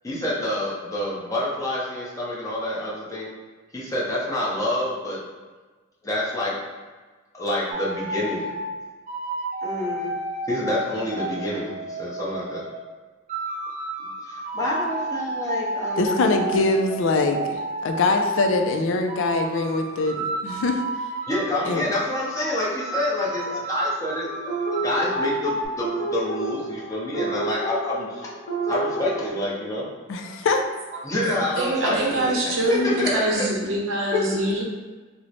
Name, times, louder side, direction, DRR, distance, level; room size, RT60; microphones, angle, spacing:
voice 1, 0.0-3.3 3.7-5.2 6.0-6.5 7.3-8.5 9.6-10.2 10.4-12.6 14.0-16.5 21.3-24.5 24.8-28.3 28.7-29.9 31.0-33.5 34.0-34.5, left 1 dB, 15° left, -6 dB, 0.7 m, -27 dB
sound 1, 7.7-8.6 9.1-12.8 13.3-18.6 19.1-22.4 22.8-25.7, right 2 dB, 40° right, 0.4 m, -31 dB
voice 2, 16.0-20.8 21.7-21.8 30.1-30.6, left 3 dB, 65° left, 5 dB, 0.3 m, -23 dB
sound 2, 24.5-29.3, right 2 dB, 45° left, 1.0 m, -30 dB
voice 3, 31.6-34.6, right 1 dB, 90° right, -2 dB, 0.7 m, -24 dB
3.0 x 2.0 x 3.8 m, 1.3 s
head